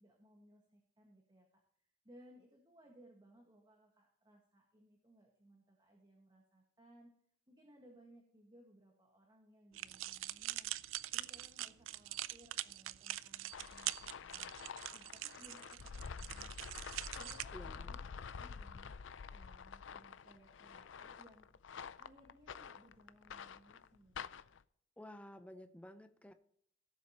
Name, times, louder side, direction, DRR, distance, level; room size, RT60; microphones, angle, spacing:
voice 1, 0.0-1.5 2.0-7.1 7.5-10.7 11.1-14.5 14.9-16.7 17.2-18.9 19.3-21.5 22.0-24.3, right 1 dB, 20° right, 1 dB, 1.6 m, -63 dB
sound 1, 9.7-17.4, right 14 dB, 80° right, 0.4 m, -43 dB
sound 2, 13.5-24.6, left 6 dB, 65° left, 0.5 m, -49 dB
voice 2, 17.5-18.0 25.0-26.3, left 1 dB, 5° left, 8 dB, 0.6 m, -53 dB
17.5 x 7.4 x 2.9 m, 0.68 s
head